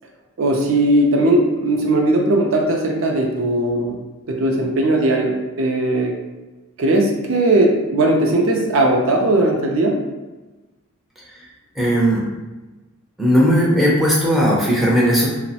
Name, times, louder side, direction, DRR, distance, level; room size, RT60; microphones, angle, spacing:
voice 1, 0.4-3.9 4.3-6.2 6.8-10.0, right 1 dB, 60° right, 1 dB, 0.4 m, -18 dB
voice 2, 11.8-12.2 13.2-15.3, equal, ahead, -6 dB, 0.4 m, -16 dB
2.9 x 2.0 x 2.7 m, 1.1 s
head